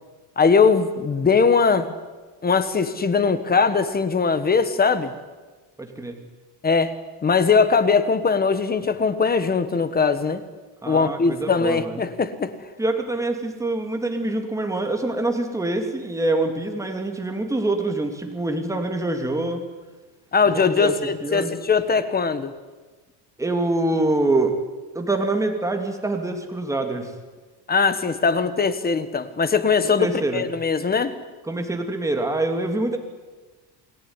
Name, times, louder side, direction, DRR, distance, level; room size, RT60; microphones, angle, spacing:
voice 1, 0.4-1.9 2.4-5.1 6.6-6.9 7.2-10.4 10.8-12.5 20.3-22.5 27.7-31.1, left 5 dB, 20° left, 12 dB, 1.5 m, -20 dB
voice 2, 5.8-6.2 10.8-12.0 12.8-19.6 20.5-21.5 23.4-24.5 24.9-27.1 29.8-30.4 31.4-33.0, right 2 dB, 5° right, 4 dB, 2.9 m, -25 dB
29.0 x 19.0 x 9.9 m, 1.3 s
cardioid pair, 160°, 49 cm